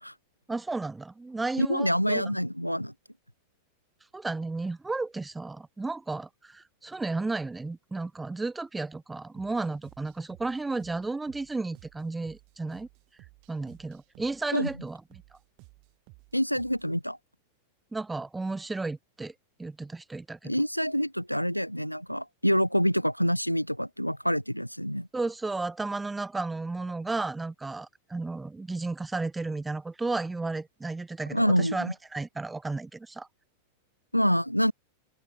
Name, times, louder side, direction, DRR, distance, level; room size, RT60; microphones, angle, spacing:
voice 1, 0.5-2.3 4.1-12.9 13.5-15.2 17.9-19.3 19.6-20.5 25.1-33.3, right 3 dB, 10° right, 2.8 m, -33 dB
voice 2, 1.6-2.9 14.5-14.7 16.3-17.2 20.4-25.1 31.3-31.9 34.1-34.7, equal, 90° left, 0.6 m, -26 dB
sound 1, 9.3-17.0, right 40 dB or more, 45° right, 4.6 m, -56 dB
open air
figure-of-eight pair, 90°, 0 cm